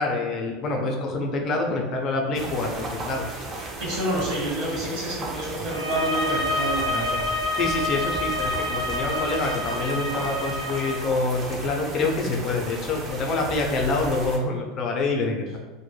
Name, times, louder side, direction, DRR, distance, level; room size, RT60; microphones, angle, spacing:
voice 1, 0.0-3.3 7.6-15.6, left 3 dB, 40° left, 1 dB, 0.5 m, -26 dB
sound 1, 2.3-14.4, right 2 dB, 30° right, 0.5 m, -36 dB
voice 2, 3.8-7.2, right 1 dB, 50° right, -5 dB, 1.2 m, -28 dB
sound 2, 5.7-11.0, left 2 dB, 70° right, 0.7 m, -28 dB
2.1 x 2.1 x 3.1 m, 1.3 s
supercardioid pair, 130°, 0 cm